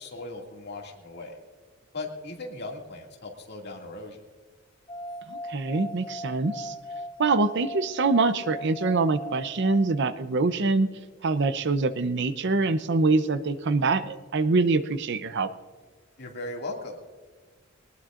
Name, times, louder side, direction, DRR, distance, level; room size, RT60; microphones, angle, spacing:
voice 1, 0.0-1.4 1.9-4.2 16.2-17.0, left 2 dB, 55° left, 0 dB, 2.3 m, -38 dB
sound 1, 4.9-10.4, left 1 dB, 25° left, 0.5 m, -39 dB
voice 2, 5.3-6.7 7.2-10.9 11.2-15.5, right 3 dB, 60° right, 11 dB, 0.7 m, -24 dB
21.0 x 19.5 x 2.5 m, 1.4 s
head